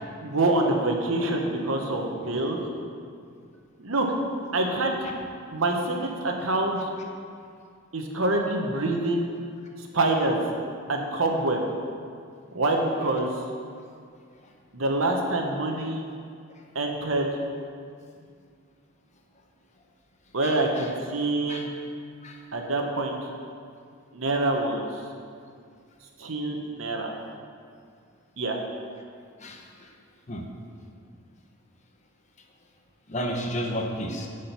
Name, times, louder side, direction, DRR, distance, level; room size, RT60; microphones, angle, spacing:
voice 1, 0.2-2.6 3.8-4.1 4.5-5.0 5.5-6.9 7.9-9.3 9.9-10.4 10.9-11.6 12.5-13.3 14.7-16.0 16.7-17.4 20.3-21.7 22.5-23.2 24.1-24.9 26.2-27.1 28.4-28.6, right 2 dB, 80° right, 1 dB, 1.2 m, -26 dB
voice 2, 20.4-20.8 21.5-21.6 22.2-22.4 29.4-29.7 30.3-30.5 33.1-34.3, equal, 35° left, 2 dB, 0.9 m, -32 dB
10.5 x 5.0 x 5.7 m, 2.2 s
head